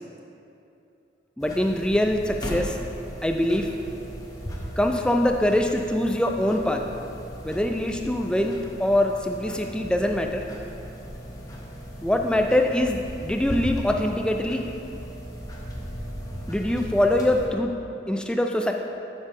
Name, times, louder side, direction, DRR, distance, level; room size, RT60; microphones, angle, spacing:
sound 1, 1.4-17.5, equal, 20° left, 0.7 m, -37 dB
voice 1, 1.4-2.8 3.2-3.7 4.8-6.8 7.4-10.4 12.0-14.6 16.5-17.7 18.1-18.7, left 1 dB, 5° left, 3 dB, 0.3 m, -23 dB
8.0 x 3.6 x 5.5 m, 2.7 s
head